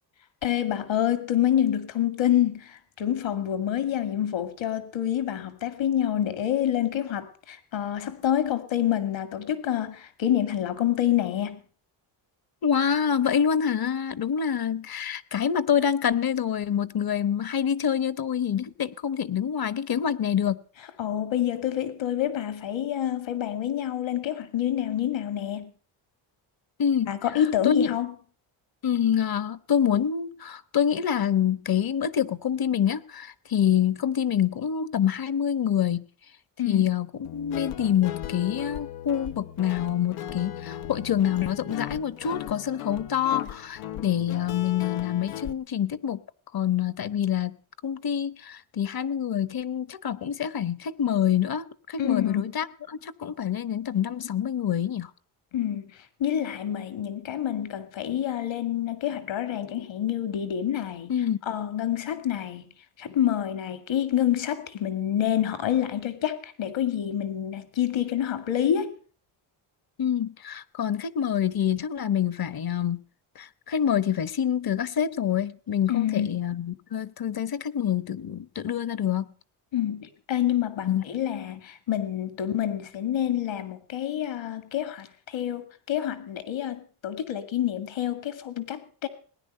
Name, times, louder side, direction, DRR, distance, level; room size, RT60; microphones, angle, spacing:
voice 1, 0.4-11.6 21.0-25.7 27.1-28.1 36.6-36.9 52.0-52.5 55.5-61.1 61.4-62.7 63.0-68.9 75.9-76.3 79.7-89.1, left 11 dB, 65° left, 2.3 m, -27 dB
voice 2, 12.6-20.6 26.8-27.1 27.6-27.9 28.8-36.1 36.7-46.2 46.5-47.6 47.8-55.1 61.1-61.4 70.0-73.0 73.4-79.3 80.8-81.0, left 9 dB, 45° left, 1.1 m, -26 dB
Guitar, 37.2-45.5, left 11 dB, 90° left, 1.0 m, -37 dB
19.0 x 10.0 x 6.6 m
cardioid pair, 85°, 49 cm